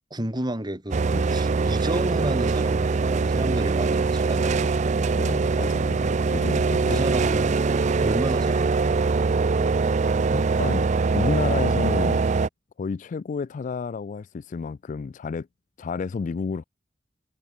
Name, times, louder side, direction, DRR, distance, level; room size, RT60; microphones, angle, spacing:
voice 1, 0.1-5.2 6.9-7.7 8.0-9.0, right 1 dB, 25° right, 2.6 m, -31 dB
sound 1, 0.9-12.5, right 4 dB, 40° right, 0.4 m, -23 dB
voice 2, 5.2-7.0 10.3-12.2 12.8-15.5 15.8-16.6, left 5 dB, 40° left, 0.3 m, -31 dB
head